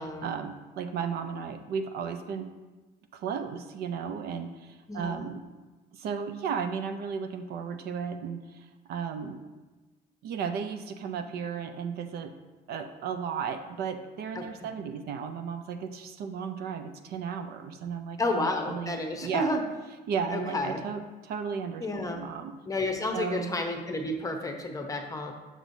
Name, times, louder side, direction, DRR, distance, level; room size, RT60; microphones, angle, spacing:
voice 1, 0.0-2.5 3.1-5.4 5.9-9.4 10.2-12.3 12.7-19.5 20.1-22.5 23.1-23.5, right 6 dB, 70° right, 7 dB, 0.5 m, -34 dB
voice 2, 4.9-5.3 14.3-14.7 18.2-19.6 20.3-20.8 21.8-22.2 22.7-25.3, left 2 dB, 20° left, 3 dB, 0.8 m, -31 dB
6.0 x 6.0 x 2.7 m, 1.2 s
cardioid pair, 110°, 17 cm